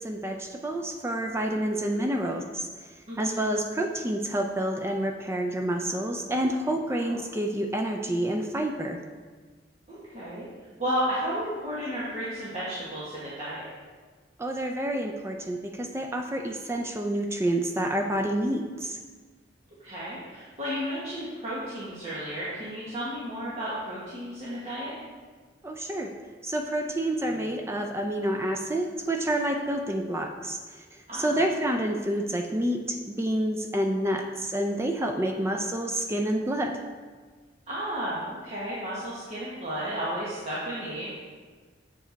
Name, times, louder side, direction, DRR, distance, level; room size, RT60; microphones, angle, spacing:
voice 1, 0.0-9.0 14.4-19.0 25.6-26.1 26.4-36.8, right 1 dB, 15° right, 3 dB, 0.4 m, -28 dB
voice 2, 3.1-3.4 6.9-7.2 9.9-10.5 10.8-13.7 19.8-24.9 31.1-31.4 35.5-35.6 37.7-41.1, equal, 35° right, -9 dB, 1.4 m, -33 dB
7.5 x 5.0 x 3.9 m, 1.5 s
head